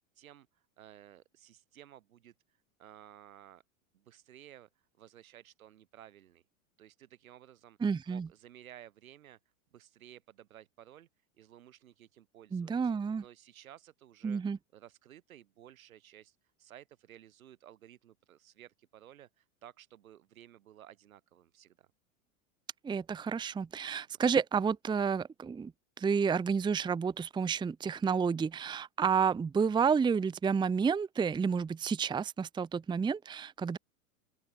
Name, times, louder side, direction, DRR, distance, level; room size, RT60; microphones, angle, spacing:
voice 1, 0.2-2.3 2.8-3.6 3.9-4.7 5.0-6.4 6.8-7.8 8.1-9.4 9.7-11.1 11.3-12.9 13.2-14.4 14.7-21.9, right 11 dB, 80° right, 4.5 m, -55 dB
voice 2, 7.8-8.3 12.5-13.2 14.2-14.6 22.8-25.7 26.0-33.8, right 6 dB, 10° right, 0.7 m, -30 dB
open air
hypercardioid pair, 105°, 41 cm